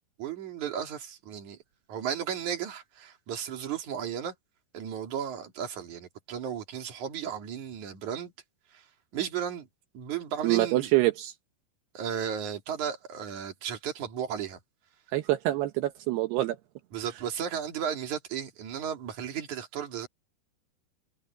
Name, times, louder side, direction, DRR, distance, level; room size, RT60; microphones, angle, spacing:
voice 1, 0.2-1.6 1.9-4.3 4.7-8.3 8.7-9.7 9.9-10.9 11.9-14.6 16.9-20.1, right 8 dB, 50° right, 3.7 m, -34 dB
voice 2, 10.4-11.3 15.1-16.6, right 17 dB, 80° right, 3.0 m, -26 dB
omnidirectional pair, 4.7 m